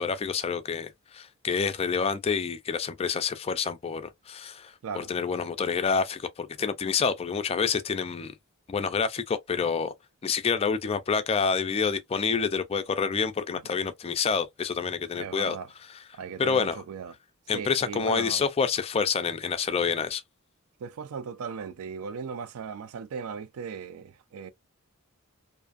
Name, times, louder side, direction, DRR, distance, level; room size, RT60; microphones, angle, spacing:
voice 1, 0.0-8.3 8.7-9.9 10.2-16.1 16.4-16.8 17.5-20.2, left 5 dB, 25° left, 0.3 m, -28 dB
voice 2, 15.2-15.7 16.1-17.1 17.5-18.4 20.8-24.5, right 6 dB, 70° right, 0.4 m, -37 dB
2.5 x 2.4 x 2.4 m
head